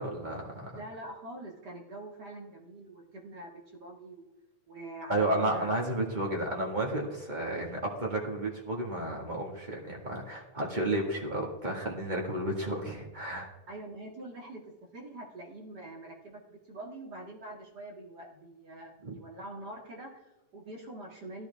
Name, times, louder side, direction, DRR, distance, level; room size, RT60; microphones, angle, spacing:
voice 1, 0.0-0.8 5.1-13.5 19.0-19.1, right 1 dB, 20° right, -1 dB, 1.4 m, -32 dB
voice 2, 0.7-4.3 4.7-5.7 6.0-6.4 13.7-21.5, right 1 dB, 35° right, -1 dB, 2.1 m, -45 dB
15.0 x 11.0 x 3.5 m, 0.93 s
omnidirectional pair, 3.6 m